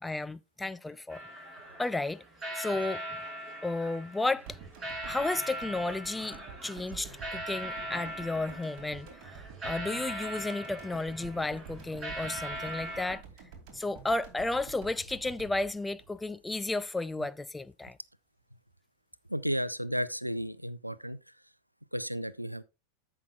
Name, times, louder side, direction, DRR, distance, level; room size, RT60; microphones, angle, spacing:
voice 1, 0.0-1.5 1.8-2.2 2.5-3.0 3.6-4.6 5.0-13.2 13.7-18.0, left 2 dB, 5° left, 0.4 m, -33 dB
sound 1, 1.1-13.2, right 1 dB, 10° right, 4.3 m, -40 dB
sound 2, 4.5-16.8 17.1-17.2, right 6 dB, 40° right, 2.5 m, -49 dB
voice 2, 19.3-21.2 21.9-22.6, equal, 90° right, 0.5 m, -33 dB
14.5 x 5.8 x 2.4 m
figure-of-eight pair, 90°, 0 cm